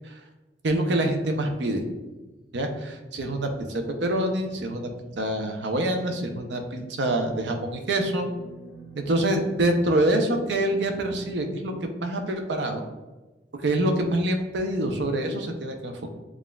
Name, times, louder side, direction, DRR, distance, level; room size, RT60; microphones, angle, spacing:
voice 1, 0.6-1.8 2.5-4.9 5.2-8.3 9.0-12.8 13.6-16.1, right 1 dB, 75° right, 4 dB, 0.6 m, -26 dB
sound 1, 2.0-11.5, right 2 dB, 10° right, 0.8 m, -47 dB
7.1 x 2.4 x 2.2 m, 1.2 s
head